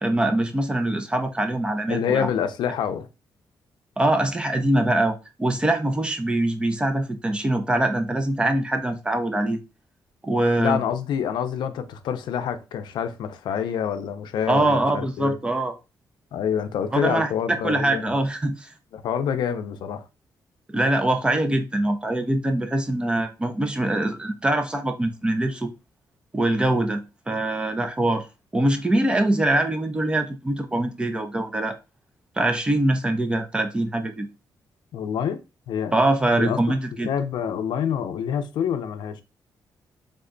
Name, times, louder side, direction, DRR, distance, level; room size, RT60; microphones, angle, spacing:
voice 1, 0.0-2.3 4.0-9.6 10.2-10.8 14.5-15.7 16.9-17.3 17.6-18.7 20.7-25.7 26.3-27.0 27.3-28.3 28.5-31.8 32.4-34.3 35.9-37.1, right 1 dB, 15° right, 0.5 m, -23 dB
voice 2, 1.9-3.1 10.6-15.4 16.3-18.2 18.9-20.0 34.9-35.4 35.7-35.9 36.3-36.6 37.0-39.2, left 8 dB, 85° left, 0.5 m, -27 dB
3.5 x 2.2 x 3.7 m
wide cardioid pair, 170°, 8 cm